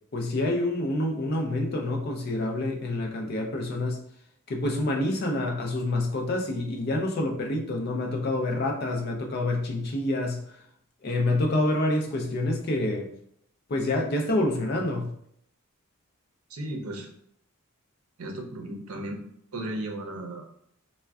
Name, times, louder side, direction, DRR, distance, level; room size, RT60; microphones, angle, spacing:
voice 1, 0.1-4.0 4.5-10.4 11.0-13.1 13.7-15.1, left 1 dB, 45° left, 2 dB, 0.4 m, -27 dB
voice 2, 16.5-17.1 18.2-19.2 19.5-20.5, right 1 dB, 80° right, 2 dB, 0.6 m, -35 dB
3.4 x 2.1 x 2.3 m, 0.69 s
head